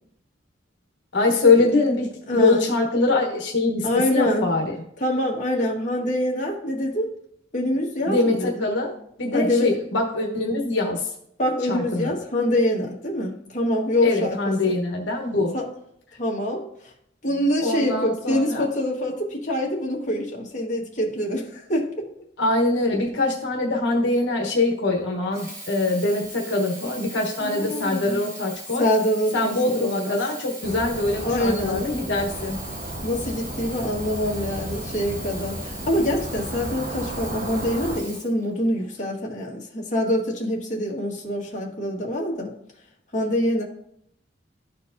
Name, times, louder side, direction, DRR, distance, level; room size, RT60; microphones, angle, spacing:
voice 1, 1.1-4.8 8.1-8.9 9.2-11.1 11.7-12.1 14.0-15.5 17.6-18.7 22.4-28.9 29.3-32.6, left 2 dB, 80° left, 1 dB, 1.1 m, -23 dB
voice 2, 2.3-2.7 3.8-4.5 5.0-7.1 7.5-8.5 9.3-9.8 11.4-14.8 15.5-15.7 16.2-16.6 17.2-22.0 27.4-28.2 28.8-30.2 31.2-31.9 33.0-42.5 43.1-43.6, left 1 dB, 40° left, -2 dB, 1.6 m, -25 dB
Sink (filling or washing), 25.2-39.0 39.7-39.8, right 1 dB, 20° right, 2.6 m, -40 dB
sound 1, 30.6-38.0, right 1 dB, 50° right, 1.1 m, -34 dB
13.0 x 4.5 x 2.6 m, 0.72 s
head